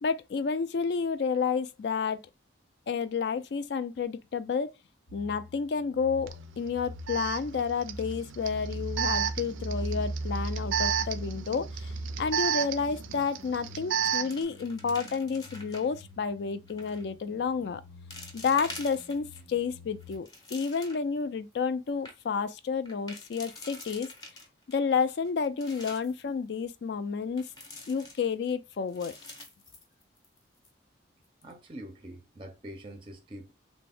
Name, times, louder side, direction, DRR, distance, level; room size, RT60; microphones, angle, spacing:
voice 1, 0.0-2.2 2.9-4.7 5.1-17.8 18.3-24.1 24.7-27.5 27.9-29.1, left 5 dB, 60° left, 0.3 m, -30 dB
sound 1, 5.1-20.2, right 1 dB, 90° left, 0.9 m, -40 dB
Alarm, 6.3-6.4 7.1-14.4, right 8 dB, 90° right, 0.4 m, -32 dB
sound 2, 13.3-13.7 13.9-16.0 16.7-17.0 17.6-17.7 18.1-19.4 19.9-21.2 21.6-21.7 21.9-22.1 22.9-24.8 25.2-26.2 27.4-28.5 28.9-30.4 30.6-30.7 31.2-31.5, left 2 dB, 20° left, 0.6 m, -46 dB
voice 2, 31.4-33.5, right 1 dB, 25° right, 0.5 m, -44 dB
3.4 x 2.1 x 3.3 m
head